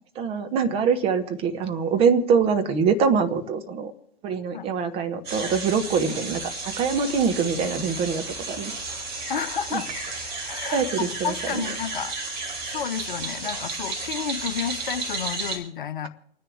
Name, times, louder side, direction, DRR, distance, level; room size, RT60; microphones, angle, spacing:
voice 1, 0.2-3.9 4.2-6.5 6.8-8.7 9.7-9.8 10.7-11.7, right 6 dB, 20° right, 7 dB, 1.0 m, -24 dB
sound 1, 5.2-15.6, right 3 dB, 50° right, 5.1 m, -33 dB
voice 2, 9.3-9.9 10.5-12.1 12.7-16.1, left 8 dB, 55° left, 11 dB, 1.0 m, -31 dB
29.5 x 10.0 x 3.5 m, 0.74 s
figure-of-eight pair, 115°, 31 cm